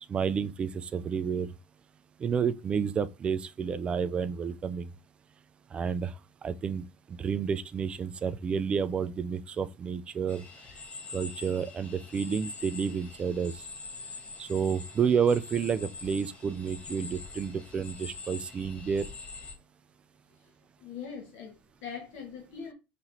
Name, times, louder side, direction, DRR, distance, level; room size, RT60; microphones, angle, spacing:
voice 1, 0.1-1.5 2.2-4.9 5.7-6.1 6.4-10.4 11.1-13.6 14.4-19.0, right 6 dB, 20° right, 0.3 m, -30 dB
sound 1, 10.3-19.5, left 3 dB, 25° left, 1.1 m, -44 dB
voice 2, 20.8-22.7, left 6 dB, 60° left, 1.2 m, -42 dB
5.6 x 3.0 x 2.6 m
supercardioid pair, 145°, 5 cm